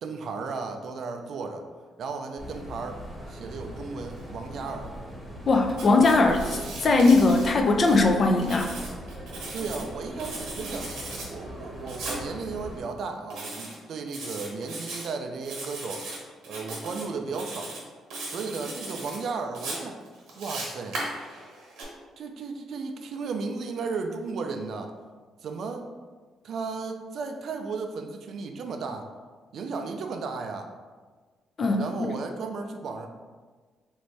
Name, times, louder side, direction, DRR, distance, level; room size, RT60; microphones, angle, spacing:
voice 1, 0.0-1.6 2.0-3.0 3.3-4.9 9.5-10.9 11.3-16.0 16.5-17.7 18.3-20.0 20.4-21.0 22.2-24.9 25.4-25.9 26.4-29.1 29.5-30.7 31.8-33.1, right 4 dB, 65° right, 5 dB, 0.3 m, -34 dB
sound 1, 2.4-12.8, equal, 5° right, 1.1 m, -40 dB
voice 2, 5.5-8.7 31.6-32.1, left 3 dB, 45° left, 3 dB, 0.4 m, -20 dB
Writing, 5.7-8.0 8.4-9.8 10.2-11.3 11.9-12.2 13.3-13.8 14.1-15.0 15.4-16.2 16.4-17.0 17.3-17.8 18.1-19.2 19.5-21.8, right 2 dB, 90° right, 1.0 m, -37 dB
3.2 x 2.6 x 3.2 m, 1.4 s
cardioid pair, 90°, 0 cm